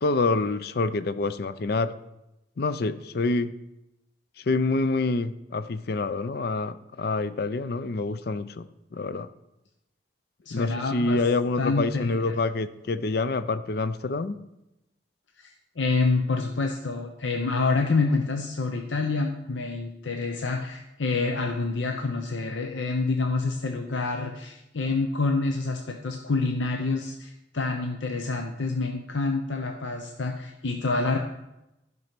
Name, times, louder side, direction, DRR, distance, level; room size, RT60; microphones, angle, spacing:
voice 1, 0.0-1.9 2.6-3.5 4.5-9.3 10.5-14.4, left 3 dB, 55° left, 13 dB, 0.5 m, -27 dB
voice 2, 10.4-11.2 11.6-12.4 15.4-31.2, left 3 dB, 85° left, 4 dB, 0.8 m, -27 dB
11.0 x 5.4 x 5.9 m, 0.91 s
head